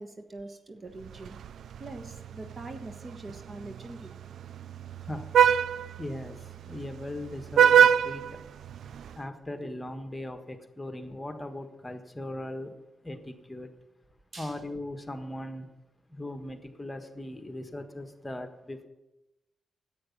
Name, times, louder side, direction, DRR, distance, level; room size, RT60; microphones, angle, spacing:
voice 1, 0.0-1.4 1.8-4.1 9.6-9.7 14.3-14.6, right 2 dB, 50° right, 7 dB, 1.4 m, -43 dB
Vehicle horn car horn honking, 1.0-9.2, right 8 dB, 85° right, 0.3 m, -26 dB
voice 2, 6.0-6.3 6.7-8.2 9.2-12.7 13.0-13.7 14.4-15.7 16.1-18.9, left 1 dB, 20° left, 6 dB, 1.5 m, -38 dB
9.9 x 8.4 x 7.3 m, 0.99 s
cardioid pair, 55°, 0 cm